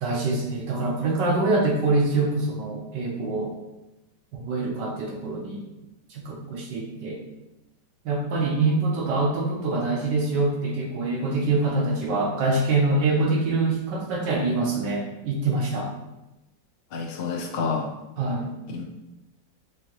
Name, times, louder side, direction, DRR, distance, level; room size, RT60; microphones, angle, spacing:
voice 1, 0.0-3.5 4.3-5.6 6.1-7.2 8.0-15.9 18.2-18.5, right 3 dB, 80° right, 0 dB, 1.6 m, -25 dB
voice 2, 16.9-17.9 18.7-18.8, left 5 dB, 90° left, 1 dB, 0.5 m, -29 dB
6.0 x 2.9 x 3.0 m, 0.95 s
omnidirectional pair, 1.9 m